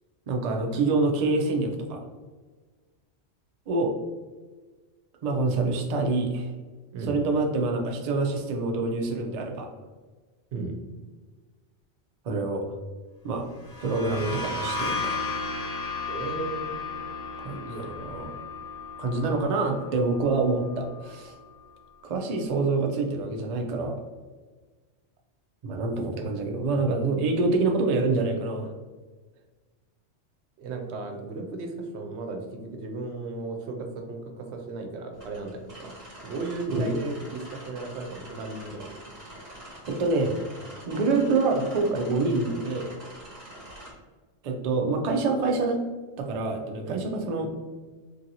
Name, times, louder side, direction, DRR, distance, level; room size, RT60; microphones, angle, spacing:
voice 1, 0.3-2.0 3.7-3.9 5.2-6.5 7.1-9.7 12.2-12.7 13.2-13.5 13.8-15.3 17.4-18.4 19.0-21.4 22.0-24.0 25.6-28.7 36.8-36.9 39.9-40.3 40.9-42.9 44.4-45.8 46.2-47.5, right 3 dB, 85° right, 3 dB, 0.3 m, -26 dB
sound 1, 13.5-21.1, left 3 dB, 65° left, 0.4 m, -34 dB
voice 2, 16.0-16.8 30.6-35.9 36.2-38.9 46.8-47.0, right 3 dB, 70° right, 3 dB, 0.8 m, -35 dB
sound 2, 35.1-43.9, right 1 dB, 35° right, 1.2 m, -45 dB
2.9 x 2.6 x 2.7 m, 1.3 s
omnidirectional pair, 1.2 m